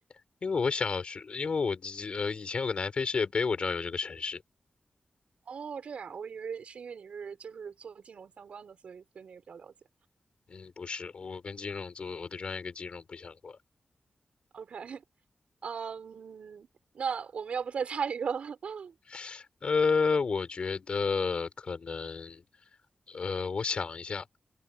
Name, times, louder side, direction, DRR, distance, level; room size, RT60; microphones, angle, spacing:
voice 1, 0.4-4.4 10.5-13.6 19.1-22.4 23.1-24.2, left 5 dB, 60° left, 5.6 m, -31 dB
voice 2, 5.5-9.7 14.5-15.0 15.6-16.7 16.9-18.9, right 6 dB, 85° right, 5.5 m, -37 dB
open air
wide cardioid pair, 100°, 2 cm